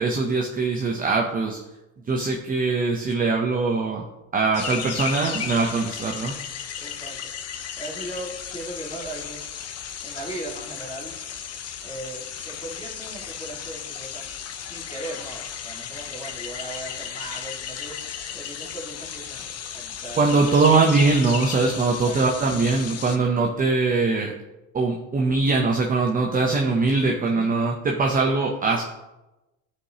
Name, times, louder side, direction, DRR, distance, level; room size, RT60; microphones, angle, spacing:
voice 1, 0.0-1.6 2.1-4.0 4.3-6.3 20.2-24.3 24.7-28.8, right 3 dB, 25° right, 1 dB, 0.8 m, -22 dB
sound 1, 4.5-23.2, left 8 dB, 45° left, 0.8 m, -35 dB
voice 2, 6.8-7.3 7.8-9.4 10.0-11.1 11.8-14.3 14.6-18.0 18.3-20.6 21.8-22.2 27.2-27.5, right 1 dB, 15° left, -4 dB, 2.0 m, -38 dB
11.0 x 4.9 x 2.9 m, 1.0 s
supercardioid pair, 100°, 36 cm